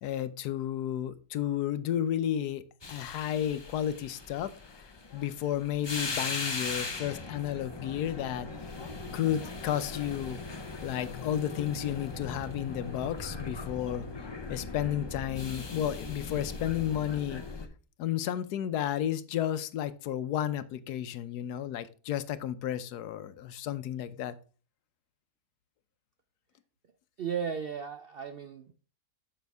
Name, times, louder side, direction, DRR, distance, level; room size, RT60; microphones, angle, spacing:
voice 1, 0.0-2.6 2.9-8.5 9.1-10.4 10.8-14.1 14.5-17.4 18.0-24.3, left 11 dB, 80° left, 13 dB, 1.2 m, -32 dB
sound 1, 2.8-17.7, left 3 dB, 30° left, 0.5 m, -39 dB
voice 2, 27.2-28.7, right 7 dB, 70° right, 8 dB, 0.5 m, -35 dB
9.3 x 6.6 x 3.5 m, 0.38 s
omnidirectional pair, 1.7 m